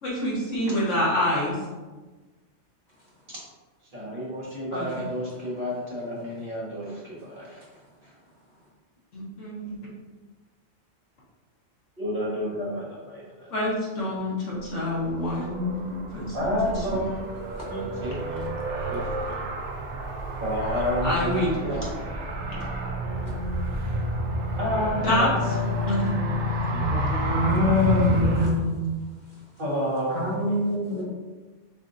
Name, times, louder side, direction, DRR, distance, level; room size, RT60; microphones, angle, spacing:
voice 1, 0.0-1.6 4.7-5.1 9.1-9.8 13.5-16.6 16.9-17.0 21.0-21.5 25.0-25.3 25.9-26.1, left 1 dB, 70° left, -6 dB, 1.6 m, -27 dB
voice 2, 3.9-7.6 12.0-13.5 16.3-18.6 18.9-19.4 20.4-22.8 24.6-26.0 26.7-27.1 27.5-27.6 29.6-30.4 30.9-31.0, equal, 45° right, -7 dB, 1.5 m, -31 dB
Car, 14.5-28.5, equal, 70° right, 1.0 m, -30 dB
voice 3, 26.9-28.8 30.1-31.0, left 2 dB, 40° left, -7 dB, 1.0 m, -24 dB
6.6 x 2.7 x 2.6 m, 1.3 s
omnidirectional pair, 1.3 m